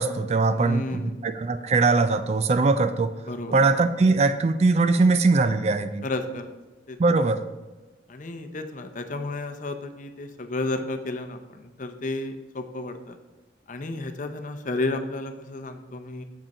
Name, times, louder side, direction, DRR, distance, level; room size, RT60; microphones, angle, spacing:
voice 1, 0.0-3.1 3.5-6.0 7.0-7.4, right 3 dB, 35° right, 11 dB, 0.3 m, -21 dB
voice 2, 0.5-1.2 3.2-3.6 6.0-6.5 6.9-7.0 8.1-13.2 13.7-16.2, left 2 dB, 45° left, 7 dB, 0.7 m, -32 dB
7.2 x 5.2 x 5.3 m, 1.2 s
head